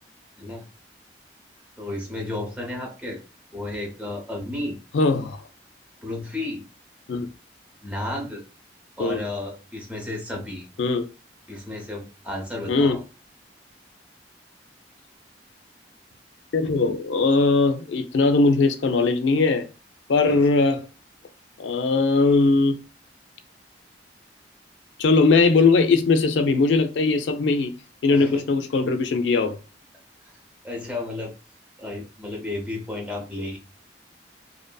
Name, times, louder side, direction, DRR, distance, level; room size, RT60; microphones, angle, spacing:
voice 1, 1.8-3.2 3.5-4.8 6.0-6.6 7.8-8.4 9.0-10.7 11.5-13.0 20.3-20.4 28.1-28.4 30.6-31.3 31.8-33.6, left 2 dB, 10° right, 0.7 m, -32 dB
voice 2, 4.9-5.4 7.1-7.3 9.0-9.2 10.8-11.1 12.7-13.0 16.5-19.7 20.1-20.8 21.6-22.8 25.0-27.7 28.0-29.6, left 3 dB, 85° left, 0.4 m, -20 dB
2.7 x 2.6 x 2.2 m
head